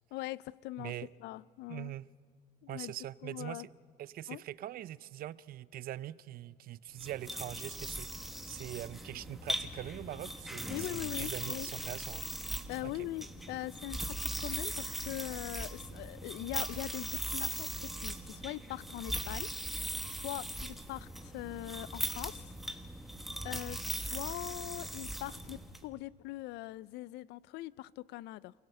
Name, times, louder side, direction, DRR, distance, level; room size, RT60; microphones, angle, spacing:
voice 1, 0.1-0.9 1.2-1.9 2.6-2.9 3.2-3.7 4.3-4.4 10.7-11.7 12.7-22.5 23.4-28.5, left 17 dB, 85° left, 0.4 m, -42 dB
voice 2, 0.8-1.1 1.7-2.1 2.7-3.7 4.0-12.3 12.8-12.9, right 13 dB, 60° right, 0.6 m, -43 dB
sound 1, 7.0-25.8, right 1 dB, ahead, 1.4 m, -40 dB
28.0 x 16.5 x 6.7 m
cardioid pair, 110°, 17 cm